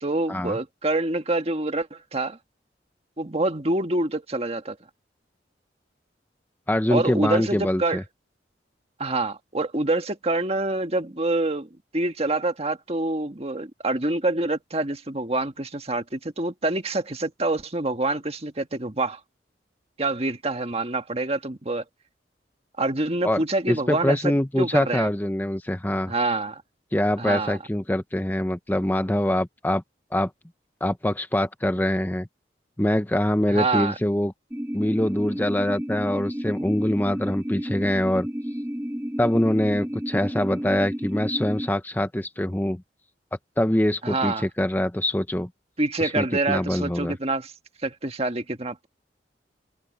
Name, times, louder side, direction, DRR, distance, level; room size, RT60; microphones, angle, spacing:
voice 1, 0.0-2.4 3.2-4.8 6.9-8.0 9.0-19.2 20.0-21.8 22.8-25.1 26.1-26.6 27.2-27.6 33.5-34.0 44.0-44.5 45.8-47.5 47.8-48.9, right 2 dB, 35° right, 1.6 m, -26 dB
voice 2, 6.7-8.0 23.2-26.1 26.9-29.8 30.1-30.3 30.8-32.3 32.8-34.3 34.7-38.3 39.2-42.8 43.6-45.5 46.0-47.1, left 1 dB, 10° left, 0.7 m, -24 dB
sound 1, 34.5-41.7, equal, 10° right, 2.0 m, -31 dB
open air
head